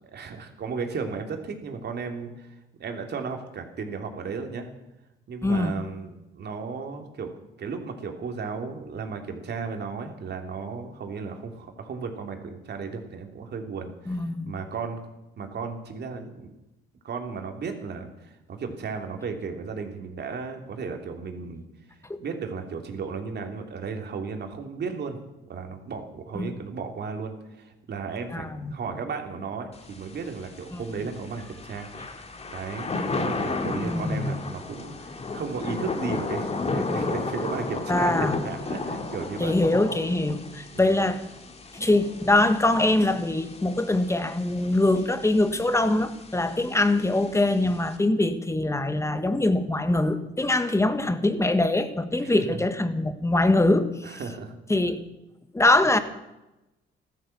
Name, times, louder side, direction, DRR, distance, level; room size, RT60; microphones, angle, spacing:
voice 1, 0.0-4.7 5.3-7.3 7.6-15.0 15.4-16.5 17.0-21.6 22.2-25.2 25.5-31.9 32.1-32.2 32.5-39.5 40.7-40.9 52.2-52.6 54.0-54.5, right 5 dB, 55° right, 4 dB, 3.0 m, -35 dB
voice 2, 5.4-5.7 14.1-14.5 26.3-26.5 28.3-28.7 30.7-30.8 33.8-34.3 37.9-38.4 39.4-41.2 41.7-54.2 54.7-55.0 55.5-56.0, left 2 dB, 15° left, 10 dB, 1.6 m, -23 dB
Thunder / Rain, 29.7-48.0, left 3 dB, 30° left, 2.3 m, -34 dB
15.0 x 13.0 x 7.2 m, 0.96 s
cardioid pair, 90°, 20 cm